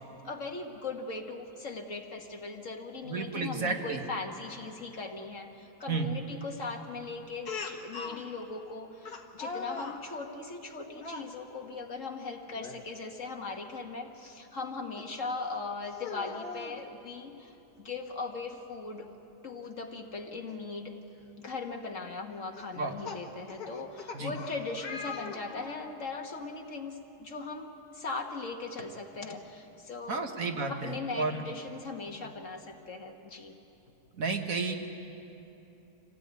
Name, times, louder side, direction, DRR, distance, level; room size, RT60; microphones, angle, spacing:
voice 1, 0.1-17.5 17.8-19.1 19.4-20.9 21.4-30.3 30.7-33.6, left 3 dB, 50° left, 3 dB, 1.8 m, -39 dB
voice 2, 3.0-4.0 5.9-6.1 22.8-23.0 24.1-24.3 30.1-31.4 34.2-34.7, right 4 dB, 55° right, 4 dB, 1.8 m, -32 dB
Speech, 7.5-8.2 9.1-10.0 11.0-11.3 12.5-12.8 13.2-13.3 15.0-15.1 15.9-16.8 18.1-18.2 18.5-18.6 20.5-20.6 21.2-21.5 22.6-25.9, left 5 dB, 65° left, 2.0 m, -41 dB
26.5 x 17.0 x 9.5 m, 2.9 s
omnidirectional pair, 1.8 m